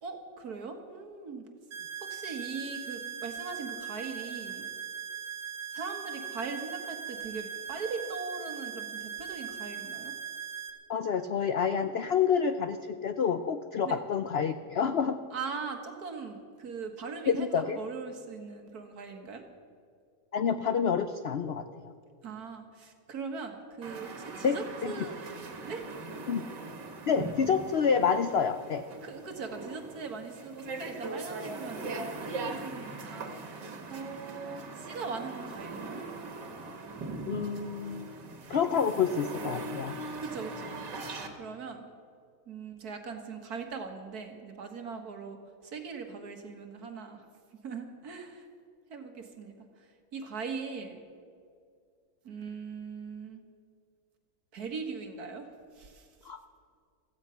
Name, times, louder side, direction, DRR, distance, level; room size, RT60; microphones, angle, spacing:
voice 1, 0.0-1.4 2.0-4.6 5.7-10.1 13.8-14.0 15.3-19.4 22.2-25.2 25.7-25.8 29.0-36.1 40.1-40.8 41.0-41.9 42.5-45.4 45.6-47.3 47.6-48.5 48.9-51.0 52.2-53.4 54.5-56.1, right 4 dB, 60° right, 5 dB, 2.0 m, -40 dB
sound 1, 1.7-10.7, right 8 dB, 35° right, 1.2 m, -40 dB
voice 2, 10.9-15.2 17.3-17.8 20.3-21.6 24.4-24.6 24.8-25.1 26.3-26.4 27.1-28.8 37.3-38.1 38.5-40.0 56.2-56.4, left 6 dB, 80° left, 10 dB, 0.5 m, -28 dB
sound 2, 23.8-41.3, right 3 dB, 85° right, 2.2 m, -41 dB
16.0 x 15.0 x 5.7 m, 2.3 s
omnidirectional pair, 1.8 m